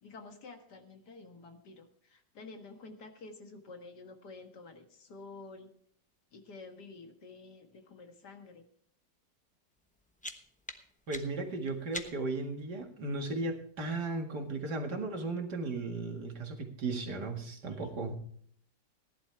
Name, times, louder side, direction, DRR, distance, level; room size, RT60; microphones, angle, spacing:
voice 1, 0.0-5.7 6.3-8.6, left 3 dB, 65° left, 5 dB, 2.2 m, -50 dB
sound 1, 9.8-12.5, left 1 dB, 10° left, 0.5 m, -45 dB
voice 2, 11.1-18.2, right 3 dB, 65° right, 3 dB, 2.5 m, -36 dB
18.0 x 11.5 x 3.5 m, 0.62 s
omnidirectional pair, 1.9 m